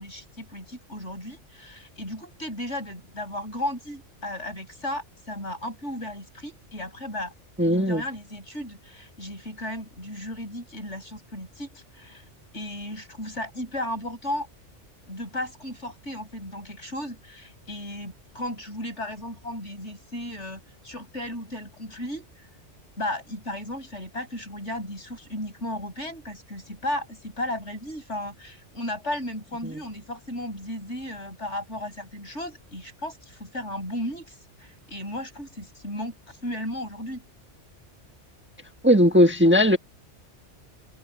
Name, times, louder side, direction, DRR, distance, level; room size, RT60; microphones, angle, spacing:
voice 1, 0.0-7.3 7.6-12.2 12.5-14.5 15.1-22.3 23.0-37.2, left 1 dB, 70° left, 8.4 m, -35 dB
voice 2, 7.6-8.0 38.8-39.8, equal, 10° right, 1.4 m, -17 dB
omnidirectional pair, 1.2 m